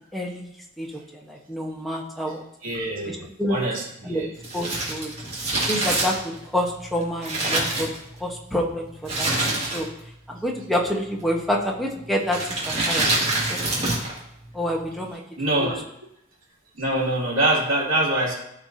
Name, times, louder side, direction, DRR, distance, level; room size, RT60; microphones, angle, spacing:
voice 1, 0.1-2.4 3.1-3.6 4.0-4.2 4.5-5.1 5.7-7.9 8.2-9.9 10.3-12.4 12.6-13.1 13.5-13.9 14.5-15.2 15.6-15.7, equal, ahead, -2 dB, 1.2 m, -28 dB
voice 2, 2.6-3.1 3.5-4.3 15.4-15.8 16.7-18.3, right 1 dB, 75° right, -5 dB, 3.2 m, -24 dB
Crumpling crinkling, 4.4-8.4 9.0-10.1 10.3-10.4 11.2-11.6 12.3-14.2 14.4-14.5, right 2 dB, 30° right, 2.4 m, -26 dB
14.0 x 4.8 x 2.8 m, 0.80 s
head